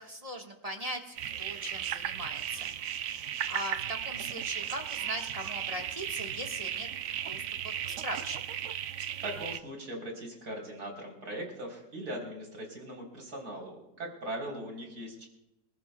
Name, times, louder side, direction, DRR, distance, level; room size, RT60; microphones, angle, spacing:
voice 1, 0.0-2.7 3.1-8.4, equal, 20° right, 2 dB, 1.4 m, -40 dB
sound 1, 1.2-9.6, right 10 dB, 80° right, 0.6 m, -36 dB
voice 2, 9.2-15.3, right 1 dB, 60° right, 0 dB, 4.3 m, -40 dB
26.5 x 14.5 x 2.3 m, 0.92 s
omnidirectional pair, 1.9 m